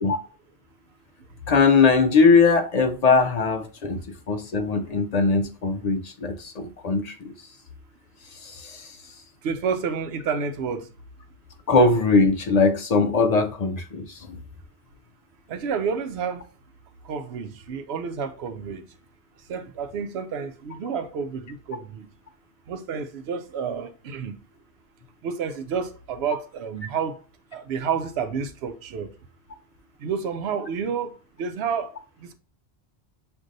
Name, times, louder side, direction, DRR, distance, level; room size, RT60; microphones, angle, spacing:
voice 1, 1.5-4.0 4.3-7.3 8.4-9.0 11.7-14.4, left 4 dB, 55° left, 0.5 m, -20 dB
voice 2, 9.4-10.9 15.5-16.5 17.0-18.8 19.5-22.1 22.7-24.4 25.2-27.2 27.5-29.1 30.0-31.9 32.2-32.3, right 6 dB, 80° right, 0.8 m, -30 dB
6.2 x 2.6 x 2.6 m
omnidirectional pair, 1.1 m